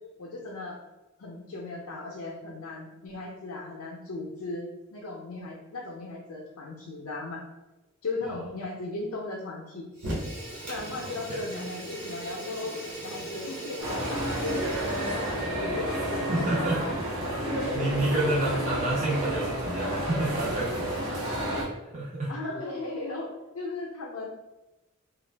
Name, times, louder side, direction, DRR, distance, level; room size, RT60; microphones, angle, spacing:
voice 1, 0.2-0.8 1.2-7.4 8.0-9.8 10.7-17.0 17.5-17.9 18.5-19.2 22.3-24.3, left 3 dB, 85° left, -2 dB, 0.5 m, -37 dB
Fire, 9.9-15.6, right 1 dB, 55° right, 1.1 m, -38 dB
voice 2, 10.9-11.4 15.9-16.8 17.4-17.5 17.7-21.0 21.9-22.3, right 1 dB, 35° right, -5 dB, 0.5 m, -29 dB
sound 1, 13.8-21.6, right 1 dB, 80° right, 0.9 m, -31 dB
2.5 x 2.3 x 3.2 m, 1.0 s
head